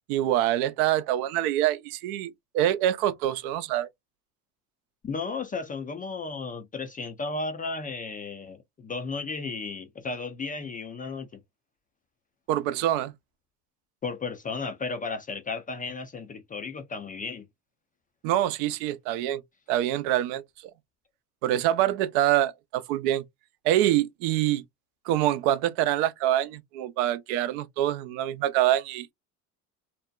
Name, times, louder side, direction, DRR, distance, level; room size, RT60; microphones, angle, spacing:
voice 1, 0.1-3.9 12.5-13.1 18.2-19.4 19.7-20.4 21.4-23.2 23.6-24.6 25.1-29.1, right 13 dB, 65° right, 0.6 m, -25 dB
voice 2, 5.0-11.4 14.0-17.5, left 4 dB, 20° left, 0.3 m, -34 dB
2.7 x 2.1 x 2.3 m
hypercardioid pair, 80°, 48 cm